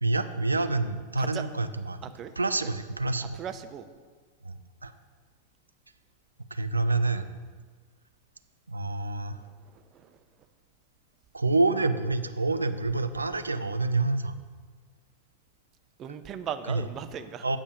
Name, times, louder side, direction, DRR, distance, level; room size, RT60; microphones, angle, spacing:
voice 1, 0.0-2.0 2.4-3.4 4.4-4.9 6.5-7.3 8.7-9.4 11.3-14.4 16.7-16.9 17.4-17.6, right 3 dB, 80° right, 10 dB, 0.4 m, -27 dB
voice 2, 3.4-3.9 9.7-9.8 16.0-17.4, right 8 dB, 30° right, 9 dB, 0.6 m, -37 dB
8.7 x 5.3 x 6.3 m, 1.5 s
figure-of-eight pair, 90°, 0 cm